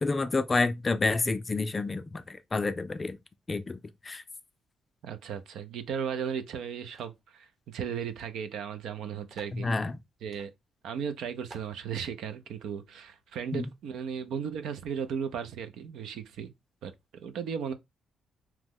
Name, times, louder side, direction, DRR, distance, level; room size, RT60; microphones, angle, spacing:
voice 1, 0.0-3.2 3.5-4.2 9.5-10.0 13.5-13.7, left 3 dB, 25° left, 0.4 m, -29 dB
voice 2, 5.0-9.7 10.2-10.5 10.8-16.5 16.8-16.9 17.2-17.7, right 7 dB, 80° right, 0.5 m, -36 dB
sound 1, 6.9-7.2 8.1-8.3 8.5-8.6 9.3-9.6 10.3-10.5 11.0-11.1 11.5-11.8, right 3 dB, 40° right, 0.8 m, -52 dB
2.9 x 2.1 x 3.5 m
cardioid pair, 90°, 0 cm